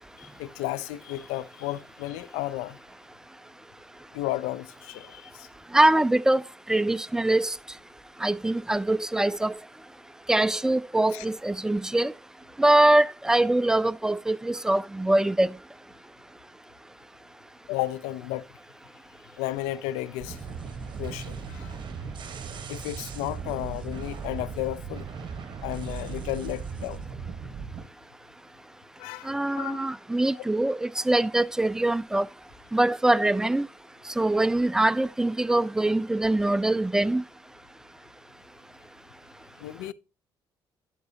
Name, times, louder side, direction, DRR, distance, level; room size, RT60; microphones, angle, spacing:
voice 1, 0.2-2.8 4.1-5.5 11.1-11.3 17.7-18.5 19.4-20.4 21.0-21.7 22.7-25.1 25.6-27.0 29.0-29.8 30.3-30.5 39.6-39.9, left 15 dB, 75° left, 0.5 m, -33 dB
voice 2, 5.7-6.4 6.7-7.5 8.2-9.5 10.3-12.1 12.6-15.5 29.3-32.3 32.7-33.7 34.2-37.2, right 1 dB, 5° right, 0.3 m, -23 dB
sound 1, 20.2-27.8, right 5 dB, 45° right, 1.1 m, -37 dB
11.0 x 5.9 x 2.8 m
hypercardioid pair, 55°, 11 cm